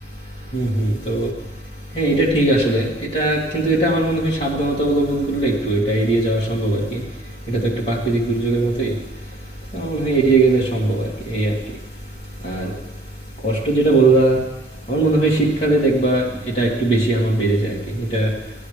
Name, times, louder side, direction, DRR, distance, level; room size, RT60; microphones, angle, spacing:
voice 1, 0.5-1.3 1.9-7.0 7.5-8.9 9.7-11.5 12.4-12.7 13.4-14.4 14.9-16.2 16.5-18.3, right 2 dB, 35° left, -5 dB, 2.8 m, -19 dB
16.5 x 9.2 x 3.4 m, 1.0 s
head